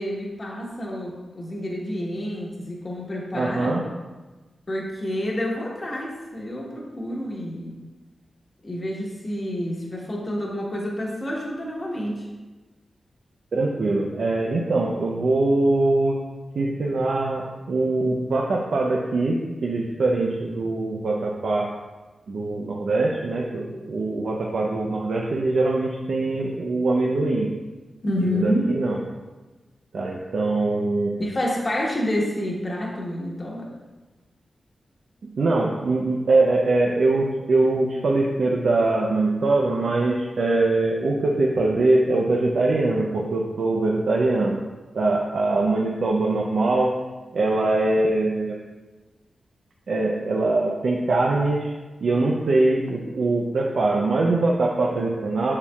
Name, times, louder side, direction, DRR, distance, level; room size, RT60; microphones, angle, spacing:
voice 1, 0.0-3.8 4.7-7.7 8.6-12.3 28.0-28.7 31.2-33.7, left 1 dB, 40° left, -3 dB, 1.2 m, -28 dB
voice 2, 3.3-3.8 13.5-16.2 16.5-21.7 22.3-27.5 28.2-29.0 29.9-31.1 35.4-44.6 44.9-46.9 47.3-48.6 49.9-51.7 52.0-55.5, right 2 dB, 75° right, -2 dB, 0.6 m, -22 dB
7.1 x 6.6 x 2.4 m, 1.2 s
cardioid pair, 65°, 0 cm